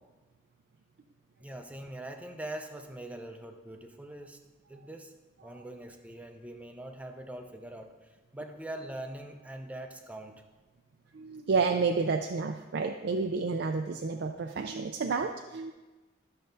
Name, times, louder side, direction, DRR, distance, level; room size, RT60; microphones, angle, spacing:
voice 1, 1.4-4.4 4.7-5.1 5.4-10.4, right 1 dB, 10° right, 5 dB, 0.6 m, -43 dB
voice 2, 11.1-15.7, right 4 dB, 60° right, 4 dB, 0.4 m, -30 dB
12.5 x 6.5 x 2.6 m, 1.2 s
head